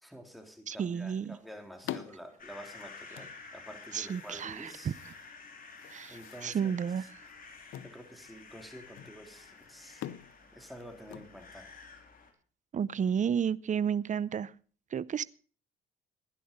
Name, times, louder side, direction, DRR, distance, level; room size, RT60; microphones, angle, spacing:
voice 1, 0.0-5.0 6.1-6.7 7.8-10.1 10.5-11.7, equal, ahead, 3.4 m, -49 dB
voice 2, 0.7-1.4 3.9-5.1 5.9-7.1 12.7-14.5 14.9-15.2, right 7 dB, 40° right, 0.6 m, -32 dB
sound 1, 0.8-11.9, left 12 dB, 80° left, 0.8 m, -48 dB
sound 2, 2.4-12.3, left 4 dB, 45° left, 3.8 m, -51 dB
16.0 x 11.0 x 5.4 m
cardioid pair, 90°, 20 cm